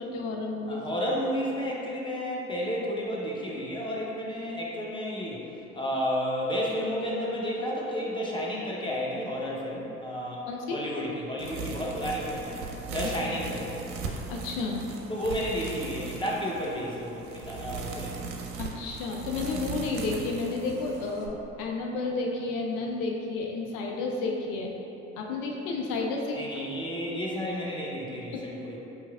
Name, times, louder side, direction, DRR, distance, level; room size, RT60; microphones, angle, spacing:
voice 1, 0.0-0.8 10.5-10.8 14.3-14.8 18.6-24.7 25.2-26.4 28.3-28.5, left 3 dB, 60° left, 0 dB, 0.5 m, -31 dB
voice 2, 0.7-12.6 12.9-13.8 15.1-18.2 26.3-28.8, equal, 15° left, -4 dB, 0.7 m, -32 dB
sound 1, 11.4-21.3, right 4 dB, 65° right, 0.5 m, -38 dB
4.5 x 3.0 x 2.3 m, 3.0 s
figure-of-eight pair, 50°, 35 cm